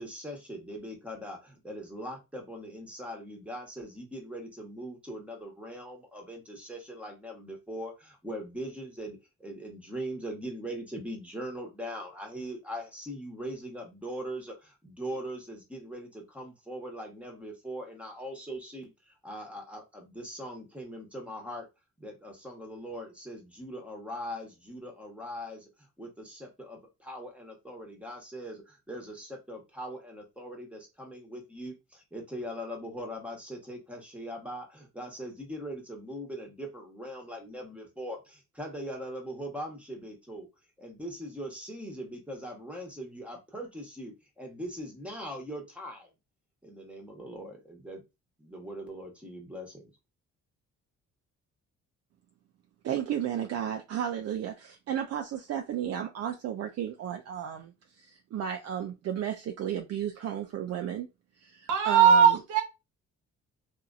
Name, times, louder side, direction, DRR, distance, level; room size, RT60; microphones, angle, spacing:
voice 1, 0.0-21.7 22.0-25.7 26.0-40.5 40.8-46.1 46.6-48.0 48.4-49.8, equal, 5° right, 1.1 m, -41 dB
voice 2, 52.8-61.1 61.4-62.2, right 9 dB, 55° right, 0.5 m, -33 dB
voice 3, 61.7-62.6, right 7 dB, 85° right, 1.0 m, -19 dB
2.8 x 2.5 x 2.4 m
cardioid pair, 90°, 30 cm